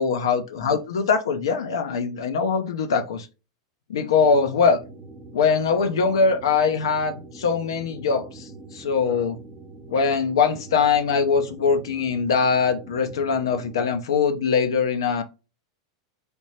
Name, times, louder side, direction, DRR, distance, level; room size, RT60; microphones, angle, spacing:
voice 1, 0.0-3.3 3.9-4.8 5.3-9.4 9.9-15.2, left 5 dB, 80° left, 6 dB, 0.6 m, -22 dB
sound 1, 4.1-14.0, right 3 dB, 20° right, 0.9 m, -43 dB
3.3 x 3.0 x 2.7 m, 0.30 s
hypercardioid pair, 110°, 3 cm